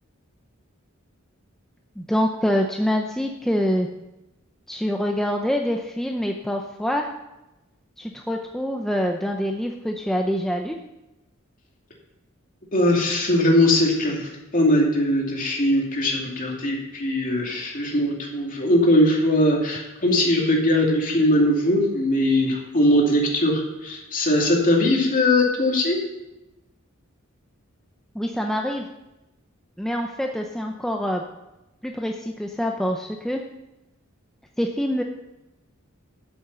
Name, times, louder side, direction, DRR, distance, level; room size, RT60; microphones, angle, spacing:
voice 1, 2.0-3.9 4.7-7.1 8.0-10.8 28.1-28.9 29.8-31.2 31.8-33.4 34.6-35.0, equal, ahead, 2 dB, 0.6 m, -25 dB
voice 2, 12.7-23.5 23.8-26.0, left 1 dB, 40° left, -1 dB, 2.6 m, -20 dB
13.0 x 7.2 x 5.6 m, 0.98 s
head